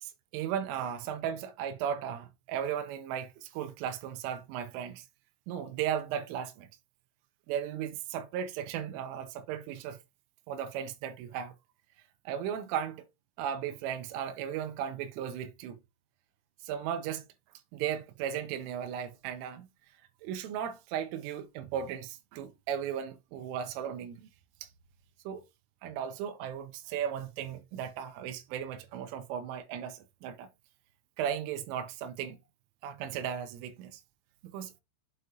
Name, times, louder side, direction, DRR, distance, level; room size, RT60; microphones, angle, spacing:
voice 1, 0.0-5.1 5.5-6.7 7.5-10.0 10.5-11.5 12.3-13.0 13.4-15.8 16.6-17.2 17.7-19.7 20.2-24.2 24.6-24.7 25.3-25.4 25.8-30.5 31.2-32.4 32.8-34.0 34.5-34.7, right 9 dB, 85° right, 3.2 m, -36 dB
7.7 x 6.3 x 2.7 m
omnidirectional pair, 5.8 m